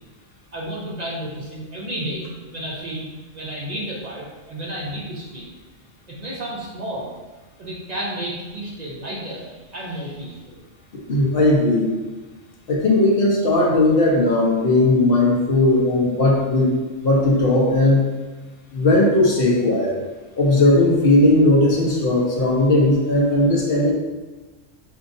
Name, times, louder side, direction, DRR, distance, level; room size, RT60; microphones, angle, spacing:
voice 1, 0.5-3.1 3.3-5.5 6.1-7.1 7.6-10.6, right 1 dB, 45° right, -5 dB, 0.6 m, -32 dB
voice 2, 11.1-11.9 12.7-16.7 17.0-18.1 18.7-20.0 20.4-23.9, left 2 dB, 55° left, -3 dB, 0.9 m, -17 dB
4.9 x 2.8 x 2.6 m, 1.2 s
omnidirectional pair, 1.3 m